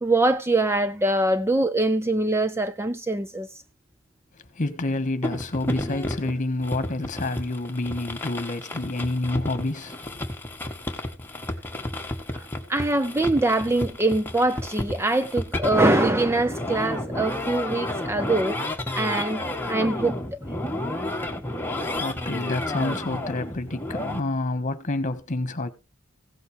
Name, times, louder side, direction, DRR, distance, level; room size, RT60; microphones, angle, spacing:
voice 1, 0.0-3.5 12.3-18.6 18.9-20.4, right 2 dB, 10° right, 0.5 m, -23 dB
voice 2, 4.5-10.3 21.9-25.7, left 2 dB, 40° left, 1.5 m, -28 dB
sound 1, 5.2-24.2, left 1 dB, 10° left, 1.6 m, -31 dB
16.5 x 8.0 x 3.4 m
head